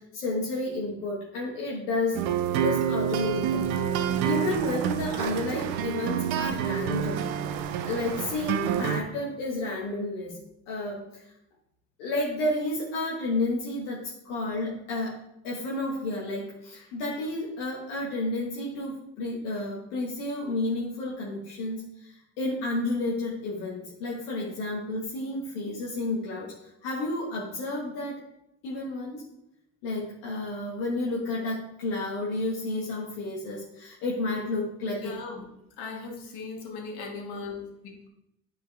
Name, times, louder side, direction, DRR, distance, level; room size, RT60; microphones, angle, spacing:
voice 1, 0.0-2.2 2.5-3.8 4.2-7.3 7.8-10.4 10.7-11.2 12.0-15.2 15.4-26.5 26.8-28.2 28.6-29.2 29.8-35.1, left 2 dB, 90° left, -4 dB, 1.5 m, -31 dB
sound 1, 2.1-9.0, right 9 dB, 90° right, 0.7 m, -28 dB
voice 2, 34.9-35.5 35.8-38.1, left 4 dB, 70° left, 0 dB, 2.0 m, -38 dB
9.8 x 4.7 x 3.4 m, 0.82 s
supercardioid pair, 65°, 41 cm